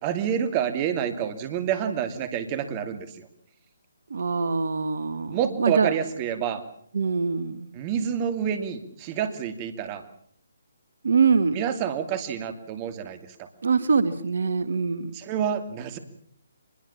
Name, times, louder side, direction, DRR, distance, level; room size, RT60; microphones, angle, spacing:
voice 1, 0.0-3.3 5.3-6.6 7.7-10.1 11.5-13.5 15.1-16.0, right 8 dB, 25° right, 10 dB, 2.7 m, -28 dB
voice 2, 4.1-5.9 6.9-7.7 11.0-11.6 13.6-15.1, right 5 dB, 65° right, 13 dB, 1.6 m, -24 dB
24.5 x 21.5 x 7.3 m, 0.64 s
figure-of-eight pair, 145°, 0 cm